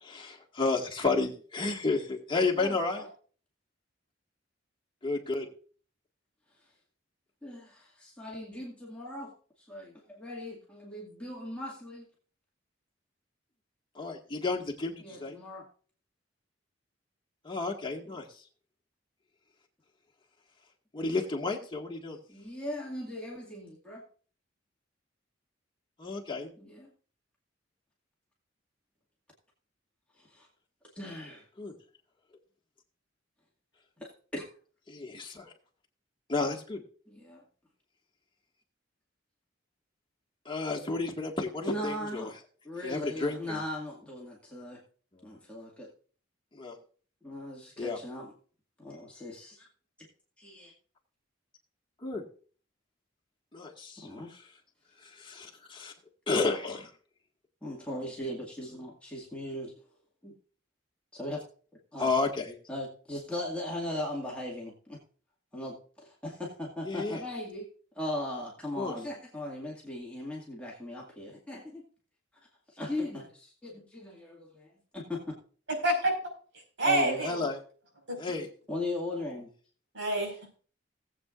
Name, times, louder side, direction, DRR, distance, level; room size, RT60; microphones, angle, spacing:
voice 1, 0.0-3.1 5.0-5.5 14.0-15.4 17.4-18.3 20.9-22.2 26.0-26.5 31.6-31.7 34.9-35.5 36.3-36.8 40.5-42.3 42.8-43.6 46.5-46.8 47.8-48.0 52.0-52.2 53.5-54.1 55.0-55.9 56.3-56.9 62.0-62.6 66.8-67.2 68.8-68.9 77.2-77.6 78.2-78.5, left 3 dB, 25° left, 1 dB, 1.8 m, -31 dB
voice 2, 2.5-3.1 7.4-9.3 9.7-12.1 15.0-15.7 18.1-18.2 22.3-24.0 26.6-26.9 30.1-30.5 30.9-31.5 34.0-34.5 37.1-37.4 41.6-42.3 42.6-44.8 45.2-45.9 47.2-48.3 48.8-49.7 50.4-50.7 54.0-54.3 57.6-59.7 60.2-60.4 61.1-61.4 61.9-62.1 62.7-65.0 65.5-67.7 67.9-71.8 72.7-75.4 76.8-77.2 78.7-79.5, left 1 dB, 5° left, -4 dB, 2.1 m, -38 dB
voice 3, 75.8-76.1 76.8-77.5 78.1-78.2 79.9-80.6, right 1 dB, 70° right, 2 dB, 5.3 m, -27 dB
19.5 x 8.0 x 2.5 m, 0.42 s
head